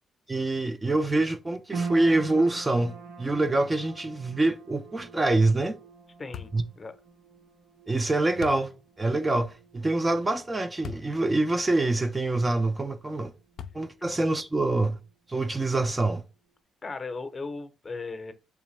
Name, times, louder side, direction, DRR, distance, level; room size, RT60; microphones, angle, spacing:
voice 1, 0.3-5.8 6.5-6.6 7.9-8.7 9.0-13.3 13.7-15.0 15.3-16.2, right 2 dB, 20° right, 0.4 m, -25 dB
sound 1, 1.7-14.1 14.4-15.3 15.8-15.9, right 4 dB, 80° right, 1.0 m, -44 dB
voice 2, 6.2-6.9 14.0-14.1 16.8-18.3, left 3 dB, 30° left, 0.7 m, -37 dB
sound 2, 6.3-6.7 8.4-8.7 10.8-11.1 11.7-11.8 13.6-14.1, left 8 dB, 65° left, 0.3 m, -40 dB
3.5 x 3.4 x 3.1 m
cardioid pair, 90°, 0 cm